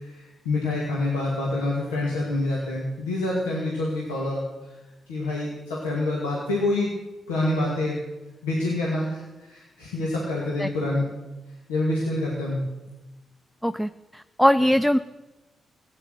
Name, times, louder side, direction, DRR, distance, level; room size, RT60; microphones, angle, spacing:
voice 1, 0.0-4.7 5.1-6.9 7.3-8.0 8.4-11.0 11.7-12.6 14.6-14.7, left 2 dB, 90° left, -4 dB, 2.4 m, -27 dB
voice 2, 13.6-15.0, equal, 5° left, 12 dB, 0.5 m, -21 dB
16.0 x 9.0 x 8.1 m, 1.1 s
hypercardioid pair, 40°, 0 cm